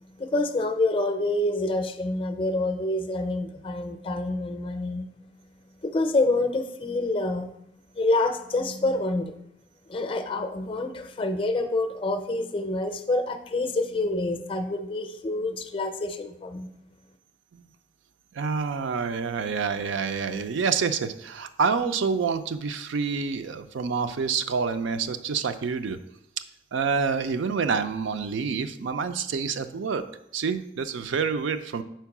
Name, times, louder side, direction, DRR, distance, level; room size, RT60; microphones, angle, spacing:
voice 1, 0.2-5.0 5.8-7.5 7.9-9.4 9.9-16.7, left 2 dB, 30° left, 7 dB, 0.5 m, -27 dB
voice 2, 18.3-26.0 26.7-30.0 30.3-31.8, right 5 dB, 80° right, 9 dB, 0.4 m, -27 dB
4.5 x 4.5 x 5.9 m, 0.79 s
head